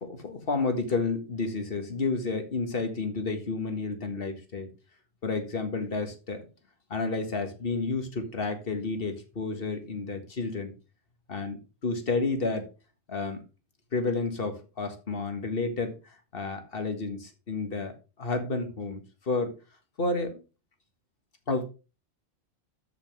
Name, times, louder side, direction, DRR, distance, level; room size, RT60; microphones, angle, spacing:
voice 1, 0.0-4.7 5.2-6.5 6.9-10.7 11.3-11.6 11.8-12.7 13.1-13.4 13.9-17.9 18.2-19.5 20.0-20.4 21.5-21.6, left 3 dB, 55° left, 6 dB, 1.9 m, -31 dB
13.0 x 5.7 x 3.3 m, 0.30 s
omnidirectional pair, 1.1 m